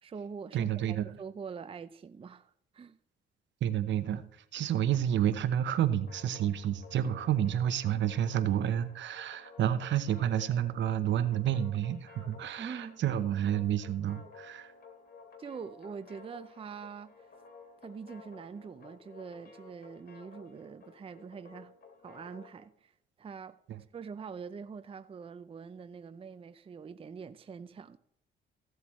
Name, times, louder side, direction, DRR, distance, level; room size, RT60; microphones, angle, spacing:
voice 1, 0.0-3.0 12.6-13.0 15.4-17.1 17.8-21.7 22.0-22.9 23.2-23.6 23.9-28.0, right 6 dB, 30° right, 0.5 m, -44 dB
voice 2, 0.5-1.0 3.6-4.2 4.5-14.7 23.7-23.8, right 10 dB, 65° right, 0.8 m, -30 dB
sound 1, 5.9-22.6, left 5 dB, 50° left, 2.7 m, -54 dB
15.0 x 7.9 x 3.1 m
cardioid pair, 90°, 20 cm